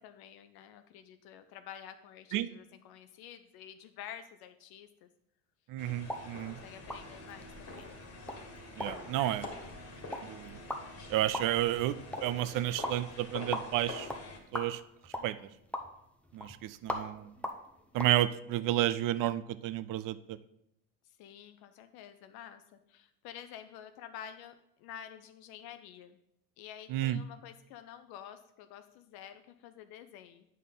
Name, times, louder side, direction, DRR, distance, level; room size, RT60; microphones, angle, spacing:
voice 1, 0.0-5.1 6.4-8.0 9.1-9.8 15.1-15.5 21.0-24.5 24.8-26.2 26.6-30.5, left 10 dB, 60° left, 9 dB, 0.6 m, -50 dB
voice 2, 5.7-6.6 8.8-9.5 10.2-10.6 11.1-12.0 12.2-14.1 14.5-14.8 15.2-15.4 16.3-17.3 17.9-20.4 26.9-27.2, right 13 dB, 50° right, 15 dB, 0.5 m, -31 dB
sound 1, 5.8-14.4, left 2 dB, 35° left, 1.6 m, -46 dB
sound 2, 6.0-18.1, left 1 dB, 5° left, 0.7 m, -43 dB
8.4 x 5.4 x 3.9 m, 0.79 s
supercardioid pair, 95°, 43 cm